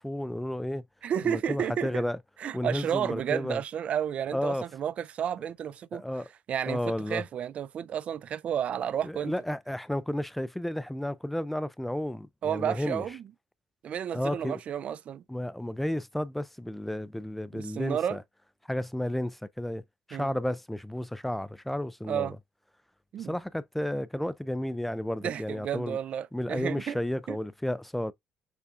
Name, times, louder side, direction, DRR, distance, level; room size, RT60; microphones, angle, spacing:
voice 1, 0.0-0.8 1.2-2.2 2.5-3.6 4.3-4.7 5.9-6.3 6.7-7.2 9.0-13.1 14.1-14.6 15.3-18.2 18.7-19.8 20.1-22.4 23.2-26.0 26.3-28.1, left 1 dB, 5° left, 0.4 m, -32 dB
voice 2, 1.0-2.0 2.4-6.0 6.5-6.8 7.1-9.3 12.4-13.2 13.8-15.2 17.5-18.2 20.1-20.3 22.1-22.3 23.1-23.3 25.2-27.0 27.3-27.4, right 9 dB, 55° right, 0.4 m, -31 dB
6.7 x 2.3 x 2.5 m
supercardioid pair, 65°, 3 cm